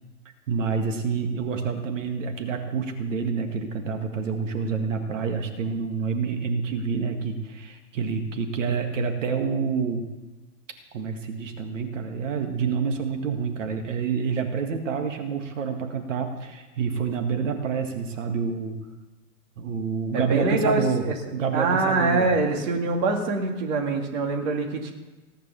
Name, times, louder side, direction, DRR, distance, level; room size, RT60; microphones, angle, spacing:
voice 1, 0.5-10.1 10.9-18.8 19.6-21.1 21.3-22.3, right 5 dB, 50° right, 5 dB, 2.0 m, -28 dB
voice 2, 20.1-21.1 21.5-24.9, right 3 dB, 30° right, 2 dB, 2.0 m, -24 dB
18.0 x 10.0 x 7.0 m, 1.2 s
hypercardioid pair, 160°, 47 cm